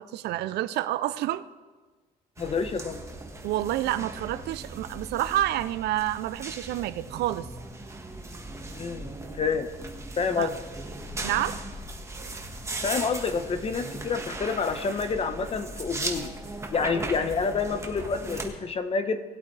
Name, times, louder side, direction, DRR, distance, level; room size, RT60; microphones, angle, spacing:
voice 1, 0.0-1.4 3.4-7.5 10.4-10.5 11.2-11.6, right 14 dB, 75° right, 14 dB, 0.5 m, -28 dB
voice 2, 2.4-3.0 8.7-9.7 10.2-10.5 12.8-16.3 16.7-19.2, left 5 dB, 35° left, 9 dB, 1.0 m, -28 dB
sound 1, 2.4-18.5, right 2 dB, 15° right, 1.6 m, -38 dB
19.0 x 8.3 x 3.3 m, 1.3 s
cardioid pair, 110°, 17 cm